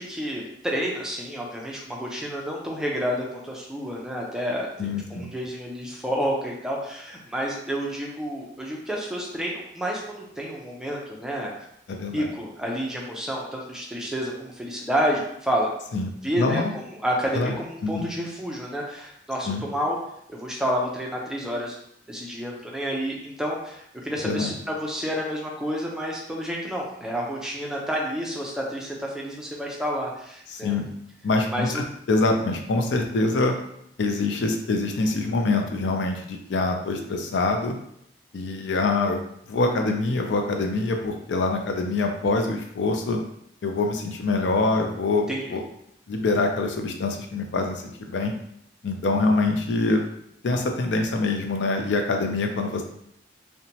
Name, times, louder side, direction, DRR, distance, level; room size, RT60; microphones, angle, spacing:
voice 1, 0.0-4.7 5.1-11.5 12.1-15.7 16.2-20.0 20.3-21.8 22.1-30.7 31.5-31.8 45.3-45.6, equal, 5° right, -3 dB, 0.4 m, -29 dB
voice 2, 4.8-5.3 11.9-12.3 15.9-16.1 16.4-16.7 17.4-17.5 17.8-18.1 19.5-19.6 24.2-24.5 30.5-30.9 31.2-33.5 34.0-37.7 38.3-39.2 39.5-43.2 43.6-45.2 45.5-45.6 46.1-48.3 48.8-50.0 50.4-52.8, left 3 dB, 85° left, 3 dB, 0.4 m, -25 dB
2.9 x 2.1 x 2.7 m, 0.72 s
head